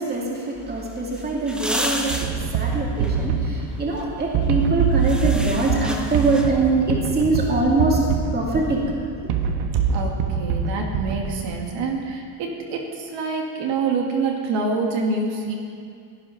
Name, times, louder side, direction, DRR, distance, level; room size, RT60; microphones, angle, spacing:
voice 1, 0.0-8.0 8.3-8.8 9.2-9.3, right 3 dB, 20° right, -2 dB, 2.4 m, -23 dB
sound 1, 0.5-6.7, equal, ahead, 0.7 m, -33 dB
sound 2, 2.1-11.7, right 6 dB, 85° right, 1.4 m, -24 dB
voice 2, 9.9-15.5, right 4 dB, 65° right, 0 dB, 2.2 m, -26 dB
17.0 x 11.5 x 5.9 m, 2.2 s
cardioid pair, 175°, 47 cm